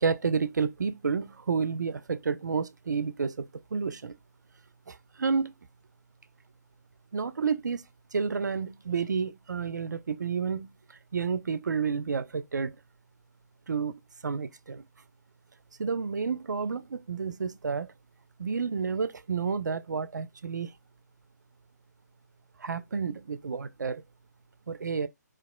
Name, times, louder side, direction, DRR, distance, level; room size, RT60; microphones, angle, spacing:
voice 1, 0.0-4.2 4.9-5.5 7.1-7.8 8.1-10.7 11.1-12.8 13.7-14.8 15.8-17.9 18.4-20.7 22.6-24.0 24.7-25.1, right 5 dB, 75° right, 0.4 m, -30 dB
2.9 x 2.4 x 2.2 m
figure-of-eight pair, 140°, 10 cm